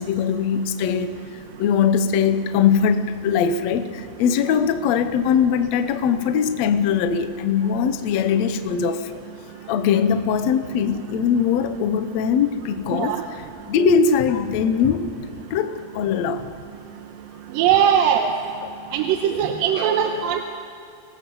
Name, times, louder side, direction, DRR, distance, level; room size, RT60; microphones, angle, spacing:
voice 1, 0.0-9.1 9.7-13.2 13.7-15.1 15.5-16.5 18.6-18.7, left 7 dB, 70° left, 9 dB, 1.8 m, -21 dB
voice 2, 12.9-13.2 17.5-18.3 18.9-20.4, right 9 dB, 90° right, 4 dB, 2.6 m, -20 dB
26.5 x 18.5 x 5.5 m, 2.7 s
omnidirectional pair, 4.0 m